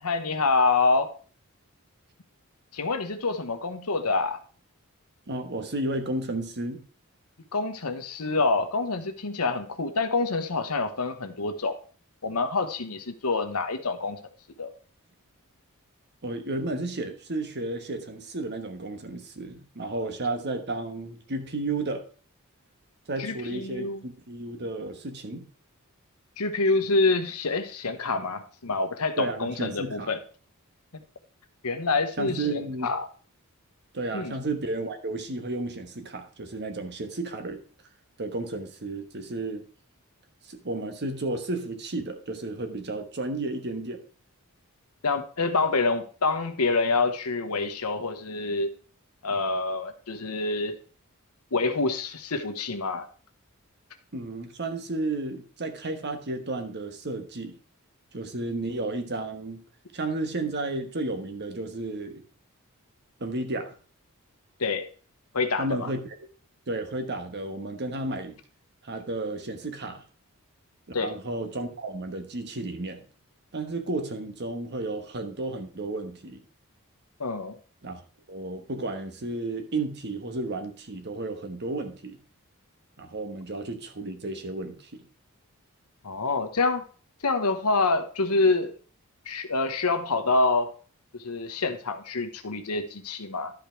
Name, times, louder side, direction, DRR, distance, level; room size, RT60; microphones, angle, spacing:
voice 1, 0.0-1.1 2.7-4.4 7.5-11.8 12.2-14.2 14.6-14.7 23.2-24.0 26.4-30.2 31.6-33.1 34.1-34.3 45.0-48.7 49.2-50.7 51.5-53.0 64.6-64.9 65.3-65.9 70.9-71.1 77.2-77.5 86.0-86.8 87.2-88.7 89.3-90.7 91.2-93.5, left 3 dB, 85° left, 8 dB, 1.1 m, -26 dB
voice 2, 5.3-6.8 16.2-22.0 23.1-25.4 29.2-30.1 32.2-32.9 33.9-37.6 38.2-39.6 40.4-44.0 54.1-57.6 58.1-59.6 59.9-62.2 63.2-63.8 65.6-66.0 66.7-68.4 68.8-70.0 71.0-73.0 73.5-76.4 77.8-78.0 78.3-82.2 83.0-85.0, right 2 dB, 50° right, 7 dB, 1.3 m, -32 dB
11.5 x 5.2 x 4.5 m, 0.39 s
head